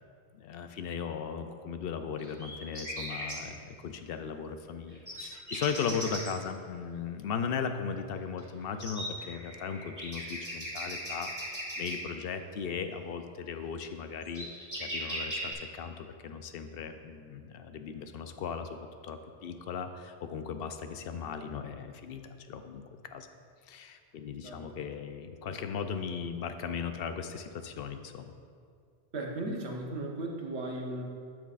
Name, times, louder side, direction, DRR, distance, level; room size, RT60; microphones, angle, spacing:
voice 1, 0.3-14.5 14.8-18.8 19.0-22.2 22.5-23.3 23.7-28.3, left 6 dB, 65° left, 8 dB, 0.7 m, -37 dB
sound 1, 2.2-3.4 4.9-6.3 8.4-8.5 8.8-12.0 13.8-13.9 14.2-15.5, equal, 15° right, 2.2 m, -38 dB
voice 2, 29.1-31.0, right 2 dB, 80° right, 0 dB, 1.3 m, -36 dB
12.0 x 6.1 x 2.5 m, 2.2 s
omnidirectional pair, 1.1 m